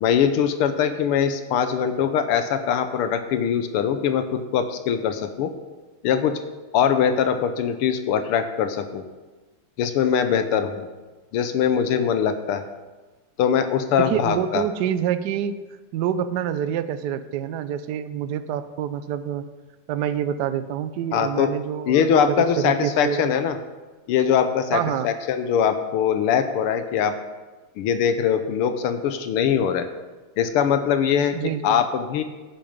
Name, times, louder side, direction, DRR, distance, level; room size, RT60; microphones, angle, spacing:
voice 1, 0.0-5.5 6.0-6.4 6.7-9.0 9.8-10.9 11.3-12.6 13.4-14.6 21.1-21.5 21.8-23.6 24.1-27.2 27.8-29.9 30.4-31.3 31.6-32.2, left 8 dB, 80° left, 9 dB, 1.7 m, -22 dB
voice 2, 14.0-15.6 15.9-19.4 19.9-23.3 24.7-25.1 31.3-31.8, right 9 dB, 75° right, 12 dB, 0.9 m, -27 dB
10.5 x 8.8 x 5.2 m, 1.2 s
omnidirectional pair, 2.4 m